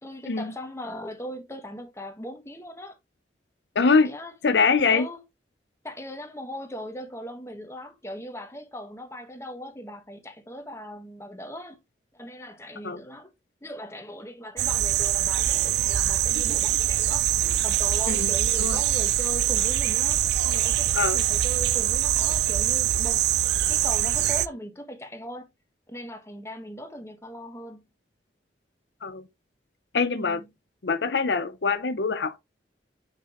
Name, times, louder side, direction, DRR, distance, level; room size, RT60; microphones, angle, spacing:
voice 1, 0.0-3.0 4.0-4.3 4.9-5.2 5.8-11.8 12.1-13.3 13.6-17.3 17.6-23.2 23.7-25.5 25.9-27.9 30.1-30.5, equal, 15° left, 1.3 m, -39 dB
voice 2, 3.7-4.2 4.4-5.1 12.8-13.0 18.1-18.3 18.6-18.8 20.9-21.2 29.0-29.3 29.9-30.4 30.8-32.4, left 4 dB, 65° left, 0.6 m, -23 dB
sound 1, 14.6-24.5, right 13 dB, 60° right, 0.3 m, -24 dB
6.3 x 6.0 x 3.0 m
head